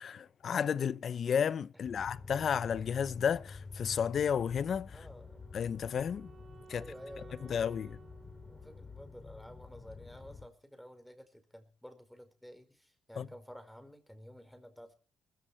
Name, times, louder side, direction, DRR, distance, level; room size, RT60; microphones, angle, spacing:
voice 1, 0.0-4.9 5.5-6.3 6.7-6.8 7.5-8.0 13.2-13.3, left 7 dB, 55° left, 0.8 m, -32 dB
sound 1, 1.8-10.5, left 4 dB, 35° left, 3.1 m, -49 dB
voice 2, 4.9-5.4 6.7-7.7 8.5-14.9, equal, ahead, 4.9 m, -52 dB
Wind instrument woodwind instrument, 5.0-10.0, right 5 dB, 50° right, 1.8 m, -58 dB
20.5 x 15.5 x 4.5 m
cardioid pair, 90°, 0 cm